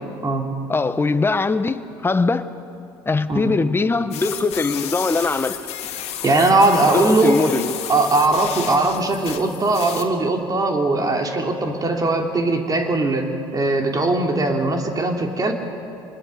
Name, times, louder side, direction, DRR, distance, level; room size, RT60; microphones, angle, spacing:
voice 1, 0.7-2.5 3.1-5.6 6.9-7.7, left 3 dB, 20° left, 10 dB, 1.2 m, -21 dB
sound 1, 4.1-10.0, left 10 dB, 60° left, 2.2 m, -32 dB
voice 2, 6.2-7.5 7.9-15.5, right 2 dB, 30° right, 3 dB, 3.3 m, -20 dB
26.0 x 21.0 x 6.8 m, 2.6 s
hypercardioid pair, 70°, 12 cm